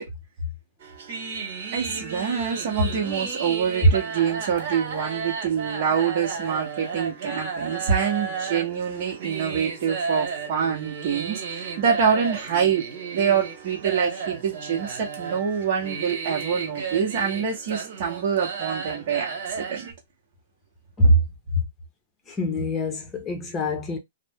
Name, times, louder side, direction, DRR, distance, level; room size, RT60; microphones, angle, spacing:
sound 1, 0.8-19.9, right 5 dB, 60° right, 1.3 m, -33 dB
voice 1, 1.7-12.8 13.1-19.9, right 7 dB, 45° right, 0.9 m, -25 dB
voice 2, 22.3-24.0, equal, 15° left, 0.8 m, -23 dB
2.5 x 2.1 x 3.5 m
hypercardioid pair, 155°, 0 cm